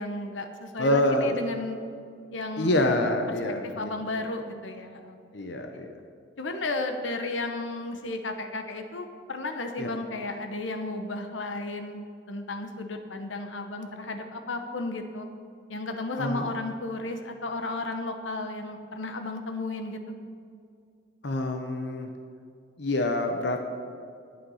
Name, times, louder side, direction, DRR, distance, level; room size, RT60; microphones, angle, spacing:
voice 1, 0.0-1.8 2.3-2.8 3.3-3.4 3.6-5.5 5.7-5.8 6.4-15.3 15.7-20.0, left 2 dB, 90° left, 6 dB, 1.0 m, -34 dB
voice 2, 0.8-1.4 2.6-3.9 5.3-5.9 9.8-9.9 16.2-16.5 21.2-22.1 22.8-23.7, left 1 dB, 65° left, 4 dB, 0.8 m, -26 dB
11.0 x 8.6 x 5.7 m, 2.4 s
head